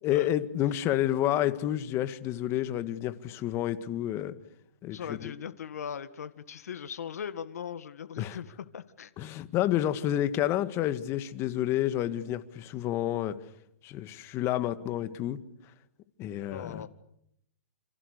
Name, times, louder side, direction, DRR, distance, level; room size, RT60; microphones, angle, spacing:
voice 1, 0.0-4.4 4.8-5.3 8.2-8.4 9.2-13.4 13.8-15.4 16.2-16.9, left 12 dB, 30° left, 2.0 m, -29 dB
voice 2, 4.9-9.1 16.5-16.9, left 8 dB, 75° left, 1.9 m, -39 dB
29.0 x 27.5 x 6.8 m
hypercardioid pair, 130°, 9 cm